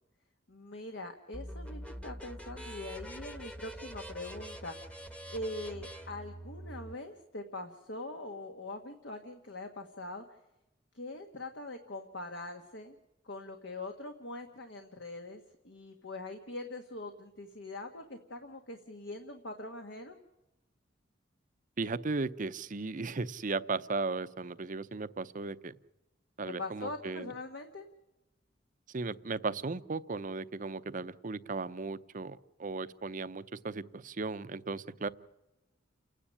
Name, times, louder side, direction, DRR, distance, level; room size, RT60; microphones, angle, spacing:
voice 1, 0.5-4.7 5.3-10.2 10.9-13.0 13.2-20.2 26.4-27.9, left 2 dB, 70° left, 5 dB, 1.6 m, -43 dB
sound 1, 1.3-6.9, equal, 5° left, 1.1 m, -44 dB
voice 2, 21.8-25.7 26.4-27.3 28.9-35.1, right 3 dB, 45° right, 14 dB, 0.7 m, -36 dB
29.0 x 10.0 x 10.0 m, 0.98 s
head